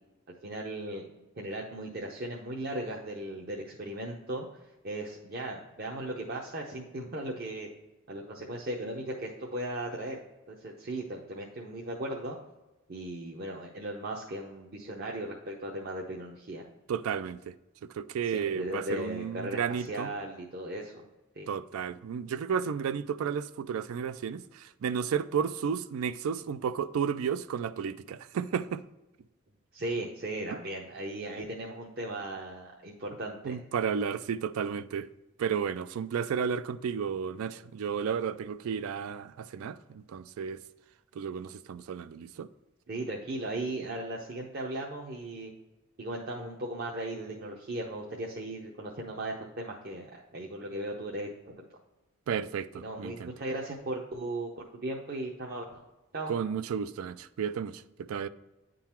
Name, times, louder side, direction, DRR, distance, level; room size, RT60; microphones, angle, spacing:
voice 1, 0.4-1.0 1.4-4.5 4.8-7.7 8.1-10.2 10.5-12.4 12.9-16.6 18.2-21.0 21.4-21.5 29.7-33.6 42.9-45.5 46.0-51.3 52.7-55.8 56.1-56.3, right 1 dB, 45° right, 0.7 m, -37 dB
voice 2, 16.9-17.5 17.9-20.1 21.5-28.8 33.4-35.1 35.4-40.6 41.2-42.5 52.3-53.3 56.3-58.3, right 7 dB, 75° right, 0.3 m, -32 dB
9.1 x 3.9 x 4.3 m
head